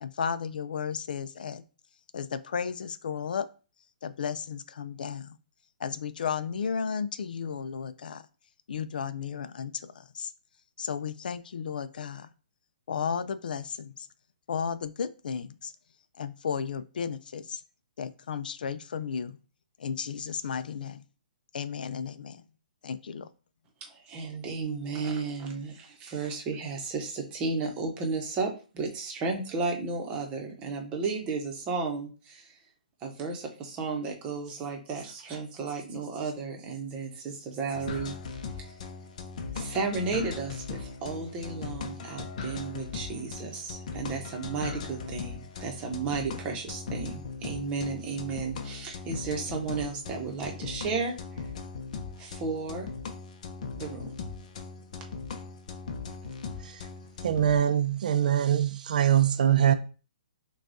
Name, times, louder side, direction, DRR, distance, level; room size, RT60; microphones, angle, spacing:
voice 1, 0.0-1.6 2.1-3.5 4.0-5.3 5.8-8.2 8.7-10.3 10.8-12.3 12.9-13.9 14.5-15.7 16.2-17.6 18.0-19.4 19.8-21.0 21.5-22.4 22.8-23.3, left 7 dB, 70° left, 0.4 m, -34 dB
voice 2, 23.8-32.6 33.0-38.2 38.6-38.7 39.5-51.4 52.2-52.9 53.7-54.1, right 4 dB, 20° right, 0.8 m, -33 dB
sound 1, 37.7-57.6, left 5 dB, 50° left, 0.7 m, -39 dB
voice 3, 57.2-59.7, right 10 dB, 60° right, 0.5 m, -23 dB
6.0 x 2.3 x 2.7 m
hypercardioid pair, 150°, 5 cm